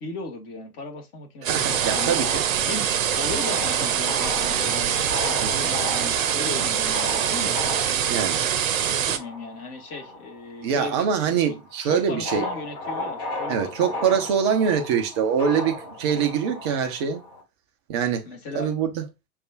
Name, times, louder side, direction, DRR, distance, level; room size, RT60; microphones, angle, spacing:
voice 1, 0.0-2.2 2.7-7.6 9.1-11.6 11.8-14.2 18.3-18.7, left 3 dB, 30° left, 1.3 m, -37 dB
voice 2, 1.4-2.4 5.4-5.7 8.0-8.4 10.6-12.5 13.5-17.2 17.9-18.3 18.5-19.0, right 7 dB, 20° right, 0.4 m, -24 dB
sound 1, 1.4-9.2, right 9 dB, 60° right, 0.7 m, -24 dB
sound 2, 1.6-10.6 10.9-17.4, left 1 dB, 50° left, 1.6 m, -35 dB
6.4 x 2.3 x 2.3 m
figure-of-eight pair, 95°, 45 cm